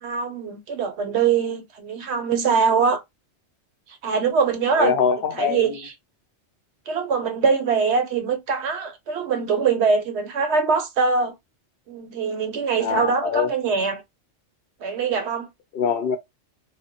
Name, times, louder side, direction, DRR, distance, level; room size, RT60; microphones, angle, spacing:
voice 1, 0.0-3.0 3.9-5.0 5.3-5.9 6.9-11.3 11.9-14.0 14.8-15.5, right 5 dB, 75° right, 0.9 m, -23 dB
voice 2, 4.8-5.7 12.8-13.5 15.7-16.2, left 6 dB, 65° left, 0.7 m, -23 dB
3.2 x 2.1 x 2.7 m
omnidirectional pair, 1.2 m